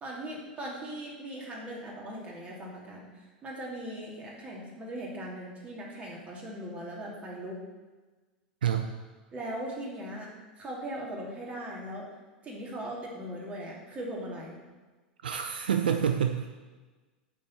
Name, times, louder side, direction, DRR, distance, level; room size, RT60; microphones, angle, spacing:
voice 1, 0.0-7.6 9.3-10.3 10.6-12.1 12.4-14.6, right 1 dB, 25° right, -3 dB, 2.8 m, -39 dB
voice 2, 15.2-16.5, right 8 dB, 75° right, 7 dB, 0.5 m, -27 dB
8.7 x 4.4 x 7.4 m, 1.3 s
hypercardioid pair, 90°, 5 cm